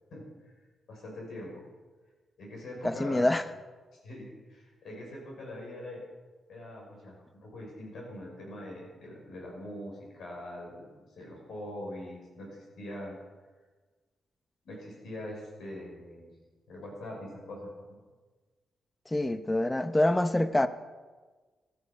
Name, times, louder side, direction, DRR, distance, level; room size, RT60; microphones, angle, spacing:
voice 1, 0.9-1.6 2.4-3.3 4.0-6.0 6.5-13.2 14.6-16.3 16.7-18.0, left 1 dB, 70° left, 5.8 m, -43 dB
voice 2, 2.8-3.4 19.1-20.7, left 1 dB, 15° left, 0.7 m, -26 dB
14.5 x 13.0 x 5.2 m
cardioid pair, 105°, 0 cm